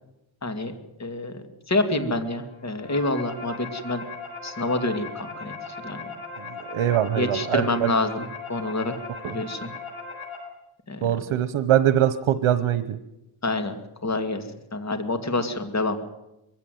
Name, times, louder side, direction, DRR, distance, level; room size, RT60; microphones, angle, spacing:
voice 1, 0.4-0.7 1.0-4.0 4.4-5.5 5.8-6.0 7.1-9.0 9.2-9.7 10.9-11.1 13.4-14.4 14.7-16.0, left 2 dB, 35° left, 7 dB, 2.5 m, -27 dB
sound 1, 2.5-10.4, left 4 dB, 75° left, 6.7 m, -38 dB
voice 2, 6.5-7.9 9.2-9.4 11.0-13.0, right 11 dB, 85° right, 13 dB, 1.1 m, -23 dB
22.0 x 16.0 x 9.4 m, 0.92 s
wide cardioid pair, 125°, 49 cm